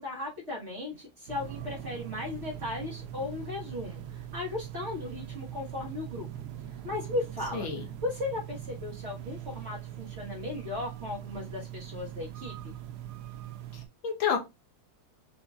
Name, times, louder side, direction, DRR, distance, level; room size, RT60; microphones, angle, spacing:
voice 1, 0.0-4.0 4.3-6.3 6.8-7.7 8.0-12.7, left 2 dB, 35° right, 1.5 m, -36 dB
sound 1, 1.3-13.9, right 11 dB, 85° right, 0.9 m, -41 dB
voice 2, 7.5-7.8 13.7-14.4, left 7 dB, 75° left, 1.9 m, -30 dB
6.5 x 2.8 x 2.4 m
omnidirectional pair, 2.3 m